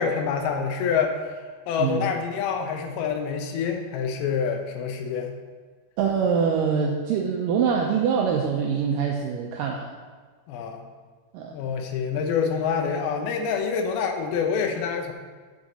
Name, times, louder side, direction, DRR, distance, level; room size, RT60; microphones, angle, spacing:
voice 1, 0.0-1.4 1.7-5.4 10.5-10.9 11.5-15.1, left 6 dB, 80° left, 4 dB, 2.6 m, -26 dB
voice 2, 6.0-9.9 11.3-11.6, right 6 dB, 85° right, 1 dB, 1.9 m, -24 dB
8.1 x 6.2 x 4.1 m, 1.5 s
omnidirectional pair, 4.5 m